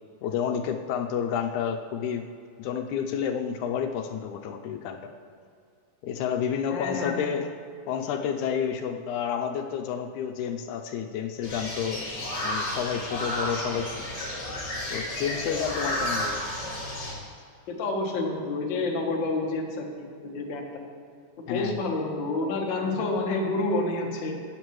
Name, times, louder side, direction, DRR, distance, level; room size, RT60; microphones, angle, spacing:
voice 1, 0.2-2.3 2.6-5.1 6.0-7.5 7.9-12.1 12.4-14.1 14.9-16.4 21.5-21.7, left 8 dB, 80° left, 5 dB, 2.0 m, -30 dB
voice 2, 6.7-7.2 17.7-20.7 21.5-24.3, left 2 dB, 50° left, 0 dB, 1.5 m, -29 dB
sound 1, 11.4-17.1, left 1 dB, 35° left, 3.0 m, -32 dB
17.0 x 8.1 x 3.1 m, 2.3 s
omnidirectional pair, 3.5 m